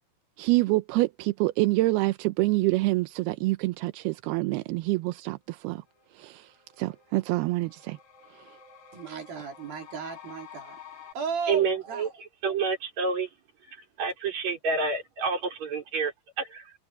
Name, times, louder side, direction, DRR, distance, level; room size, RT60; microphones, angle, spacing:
voice 1, 0.4-5.8 6.1-6.5 6.8-8.0, right 21 dB, 80° right, 2.5 m, -26 dB
sound 1, 5.4-5.5 5.8-11.1, left 8 dB, 70° left, 8.1 m, -50 dB
voice 2, 8.9-10.8 11.1-12.1, right 6 dB, 60° right, 4.8 m, -35 dB
voice 3, 11.5-13.3 13.7-16.7, right 5 dB, 40° right, 5.8 m, -29 dB
omnidirectional pair, 4.9 m